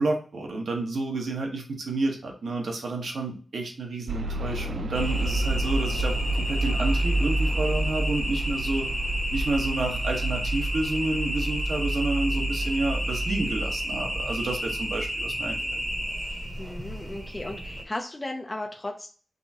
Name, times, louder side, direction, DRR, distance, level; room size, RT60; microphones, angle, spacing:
voice 1, 0.0-8.9 9.3-15.6, right 2 dB, 70° right, 1 dB, 1.2 m, -30 dB
sound 1, 4.1-16.0 16.7-16.8 17.3-17.4, equal, 50° right, 0.4 m, -37 dB
sound 2, 4.9-17.8, right 1 dB, 20° right, 0.9 m, -28 dB
voice 2, 16.6-19.1, left 2 dB, 20° left, 2 dB, 0.5 m, -35 dB
5.3 x 3.5 x 2.8 m, 0.40 s
wide cardioid pair, 175°, 0 cm